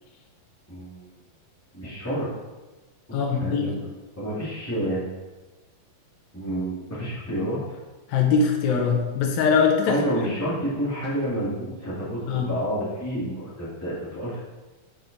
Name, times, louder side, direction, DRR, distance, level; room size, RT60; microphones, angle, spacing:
voice 1, 0.7-1.1 1.7-2.3 3.1-5.0 6.3-7.8 9.9-14.4, equal, 10° left, -9 dB, 0.7 m, -29 dB
voice 2, 3.1-3.7 8.1-10.0 12.3-12.5, left 5 dB, 80° left, 1 dB, 2.5 m, -22 dB
7.6 x 4.8 x 3.9 m, 1.2 s
omnidirectional pair, 4.1 m